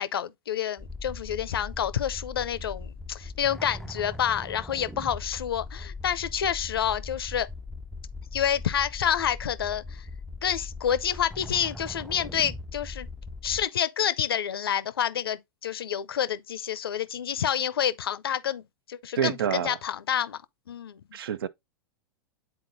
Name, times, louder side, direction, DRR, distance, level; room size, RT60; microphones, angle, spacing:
voice 1, 0.0-7.5 8.3-10.1 10.4-13.1 13.4-20.4 20.7-21.0, left 9 dB, 80° left, 0.5 m, -28 dB
sound 1, 0.8-13.7, left 3 dB, ahead, 0.4 m, -40 dB
voice 2, 19.2-19.8 21.1-21.5, right 9 dB, 75° right, 0.5 m, -27 dB
9.0 x 4.1 x 2.6 m
hypercardioid pair, 100°, 12 cm